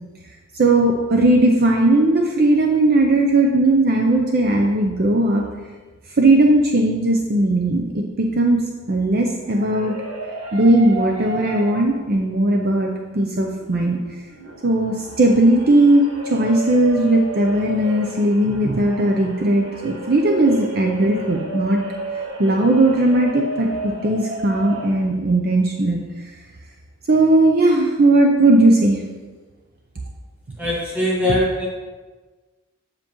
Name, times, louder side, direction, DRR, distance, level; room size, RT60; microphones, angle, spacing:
voice 1, 0.5-5.4 6.1-9.9 10.5-14.0 14.6-21.8 22.4-26.3 27.1-29.0 31.3-31.4, right 2 dB, 45° right, 1 dB, 0.5 m, -17 dB
sound 1, 9.4-12.1 12.5-12.6 13.2-24.9, right 1 dB, 65° right, 1.3 m, -32 dB
voice 2, 30.6-31.7, left 1 dB, 5° right, -6 dB, 1.8 m, -22 dB
7.5 x 7.1 x 3.0 m, 1.3 s
head